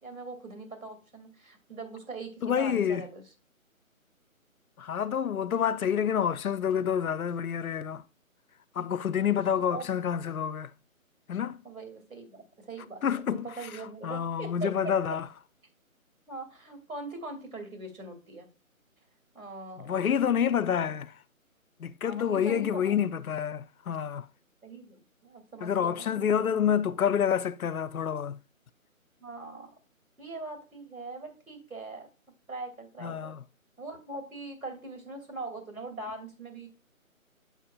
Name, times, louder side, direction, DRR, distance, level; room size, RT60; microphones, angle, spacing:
voice 1, 0.0-3.2 9.2-9.3 9.6-9.8 11.6-14.9 16.3-18.5 19.3-20.0 22.0-23.0 24.6-26.0 29.2-29.7 30.2-32.1 32.5-33.3 33.8-36.7, right 2 dB, 75° right, 2.5 m, -41 dB
voice 2, 2.4-3.0 4.8-8.0 8.8-10.7 11.3-11.6 13.0-13.5 14.0-15.3 19.8-21.1 21.8-24.3 25.6-28.4 33.0-33.4, left 8 dB, 80° left, 0.6 m, -28 dB
8.3 x 5.6 x 2.3 m
figure-of-eight pair, 155°, 42 cm